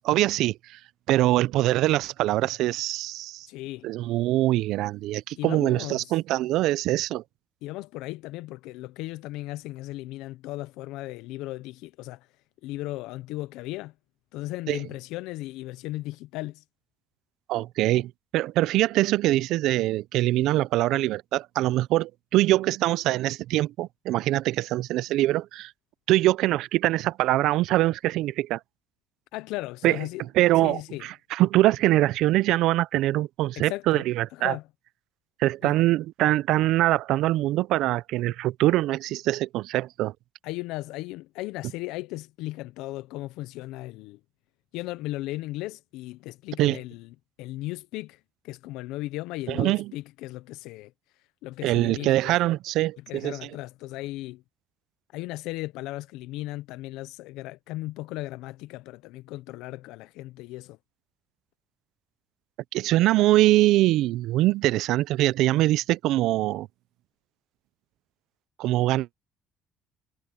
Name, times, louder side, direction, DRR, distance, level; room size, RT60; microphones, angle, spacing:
voice 1, 0.0-0.8 1.1-3.5 3.8-7.2 14.7-14.8 17.5-25.7 26.1-28.6 29.8-30.0 30.3-34.6 35.4-40.1 46.6-46.8 49.5-49.9 51.6-53.4 62.7-66.7 68.6-69.1, right 16 dB, 75° right, 0.5 m, -23 dB
voice 2, 3.5-3.9 5.4-6.1 7.6-12.3 12.6-13.9 14.3-16.6 29.3-30.2 30.6-31.1 33.6-34.0 34.3-34.6 35.6-35.7 40.4-44.2 44.7-47.1 47.4-48.2 48.4-50.9 51.4-52.3 53.1-54.4 55.1-60.8, left 18 dB, 80° left, 0.6 m, -36 dB
supercardioid pair, 80°, 0 cm